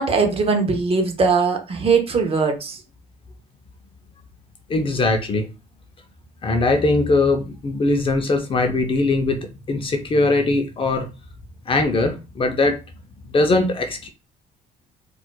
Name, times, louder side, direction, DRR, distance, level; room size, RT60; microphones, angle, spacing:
voice 1, 0.0-2.8, right 4 dB, 35° right, 0.8 m, -20 dB
voice 2, 4.7-5.5 6.4-11.1 11.7-12.8 13.3-14.1, left 2 dB, 30° left, 0.6 m, -20 dB
4.2 x 2.4 x 2.2 m
cardioid pair, 110°, 17 cm